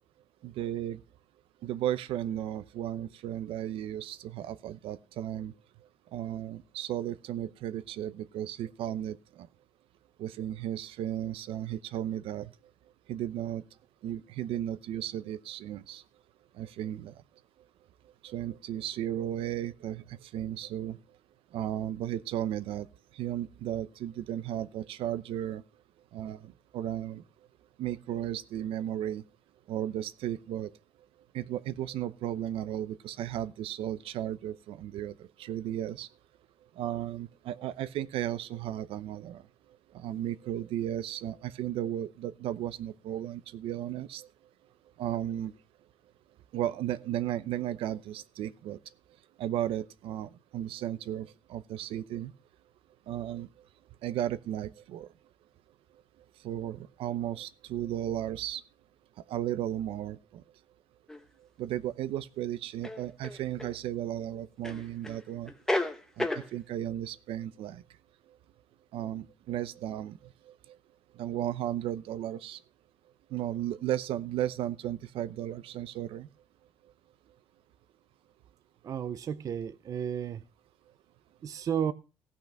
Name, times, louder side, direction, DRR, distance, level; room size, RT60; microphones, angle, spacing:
voice 1, 0.4-1.0 1.6-5.5 6.1-9.2 10.2-12.5 13.1-13.6 14.0-16.0 16.6-17.1 18.2-21.0 21.5-22.9 23.2-25.6 26.1-26.4 26.7-27.2 27.8-29.2 29.7-30.7 31.3-35.1 35.4-36.1 36.8-39.4 39.9-44.3 45.0-45.5 46.5-48.8 49.4-52.3 53.1-53.5 54.0-55.1 56.4-58.6 59.3-60.4 61.6-65.5 66.2-67.8 68.9-70.2 71.2-72.6 73.3-76.3, right 12 dB, 70° right, 0.8 m, -34 dB
sound 1, 61.1-61.2 62.8-63.7 64.6-65.2 65.5-66.5, left 1 dB, 5° left, 1.0 m, -32 dB
voice 2, 78.8-80.4 81.4-81.9, right 8 dB, 35° right, 0.6 m, -32 dB
16.0 x 6.0 x 5.9 m
cardioid pair, 175°, 10 cm